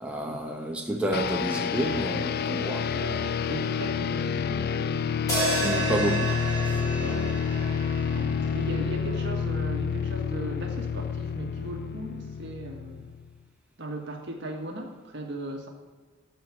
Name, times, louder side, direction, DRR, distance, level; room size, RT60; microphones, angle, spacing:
voice 1, 0.0-2.9 5.6-6.4, right 1 dB, 5° right, 0 dB, 0.9 m, -29 dB
sound 1, 1.1-13.3, left 6 dB, 50° left, 0.3 m, -29 dB
voice 2, 2.9-5.1 7.0-13.1 13.8-15.7, right 1 dB, 60° right, 2 dB, 1.6 m, -38 dB
sound 2, 5.3-9.6, right 2 dB, 20° left, 3.2 m, -32 dB
12.5 x 4.8 x 7.0 m, 1.4 s
head